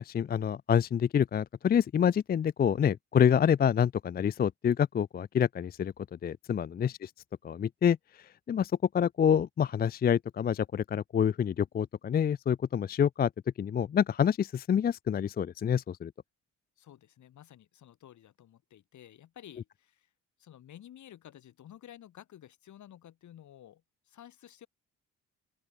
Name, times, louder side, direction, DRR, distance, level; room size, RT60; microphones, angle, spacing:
voice 1, 0.0-7.1 7.4-8.0 8.5-13.3 13.6-16.1, left 8 dB, 30° left, 0.4 m, -27 dB
voice 2, 16.8-20.1 20.4-23.8 24.1-24.7, left 11 dB, 70° left, 7.9 m, -52 dB
open air
cardioid pair, 90°, 30 cm